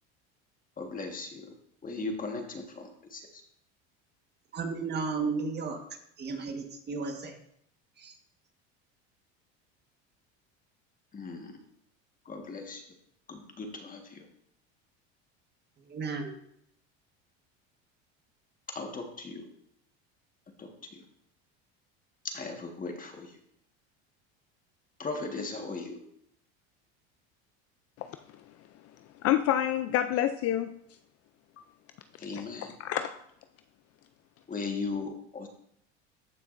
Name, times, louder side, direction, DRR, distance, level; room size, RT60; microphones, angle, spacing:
voice 1, 0.8-1.5 1.8-3.4 11.1-11.5 12.2-12.8 13.3-14.3 18.7-19.5 20.6-21.0 22.2-23.3 25.0-26.0 32.2-32.7 34.5-35.5, left 3 dB, 25° left, 3 dB, 1.6 m, -38 dB
voice 2, 4.5-5.8 6.2-7.3 8.0-8.2 15.9-16.3, right 4 dB, 30° right, 4 dB, 1.5 m, -33 dB
voice 3, 29.2-30.8 32.3-32.4 32.8-33.2, left 11 dB, 50° left, 10 dB, 0.5 m, -27 dB
14.0 x 5.7 x 2.6 m, 0.72 s
supercardioid pair, 105°, 32 cm